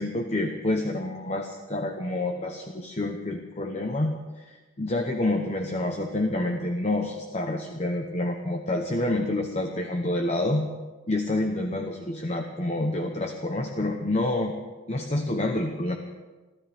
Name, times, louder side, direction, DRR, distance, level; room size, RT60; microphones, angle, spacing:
voice 1, 0.0-10.7 11.1-14.5 14.9-16.0, left 1 dB, 35° left, 3 dB, 1.0 m, -28 dB
28.0 x 13.0 x 3.6 m, 1.3 s
head